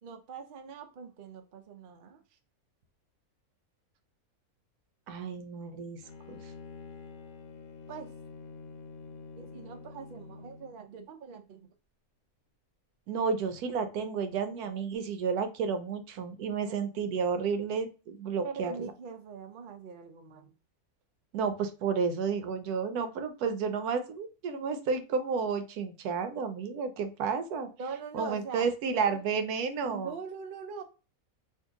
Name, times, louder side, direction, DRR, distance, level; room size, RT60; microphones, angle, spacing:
voice 1, 0.0-2.2 7.9-8.1 9.4-11.7 16.7-16.8 18.4-20.5 27.8-28.7 29.0-29.2 29.8-30.8, right 5 dB, 60° right, 5 dB, 0.5 m, -42 dB
voice 2, 5.1-6.0 6.3-6.4 13.1-18.7 21.3-27.7 28.1-30.1, right 5 dB, 85° right, 9 dB, 1.1 m, -31 dB
Bowed string instrument, 6.0-10.8, left 5 dB, 75° left, 1.1 m, -47 dB
2.8 x 2.6 x 3.5 m, 0.33 s
omnidirectional pair, 1.6 m